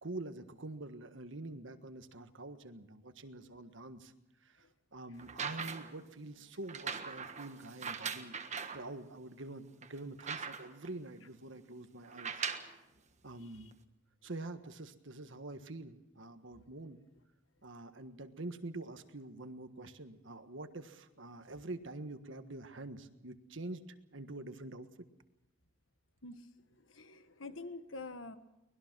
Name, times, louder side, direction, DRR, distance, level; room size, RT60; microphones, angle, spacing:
voice 1, 0.0-4.1 4.4-8.4 8.7-12.4 12.7-12.8 13.2-13.8 14.2-17.0 17.6-24.9, right 2 dB, 75° right, 9 dB, 1.5 m, -46 dB
sound 1, 5.2-6.0 6.7-8.8 9.4-9.5 9.8-10.9 12.1-12.8 13.7-13.8, right 6 dB, 35° right, 1.5 m, -40 dB
voice 2, 26.2-28.4, left 3 dB, 85° left, 10 dB, 1.5 m, -47 dB
24.0 x 20.0 x 6.2 m, 0.91 s
head